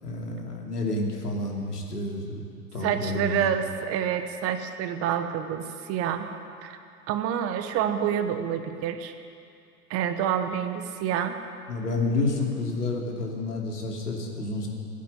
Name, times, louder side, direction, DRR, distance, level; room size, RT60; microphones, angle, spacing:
voice 1, 0.0-2.4 2.7-3.5 11.7-14.7, left 2 dB, 80° left, 0 dB, 2.8 m, -29 dB
voice 2, 2.8-6.3 6.6-6.8 7.1-9.1 9.9-11.4, right 9 dB, 30° right, 8 dB, 0.9 m, -28 dB
16.0 x 8.5 x 9.5 m, 2.5 s
figure-of-eight pair, 100°, 46 cm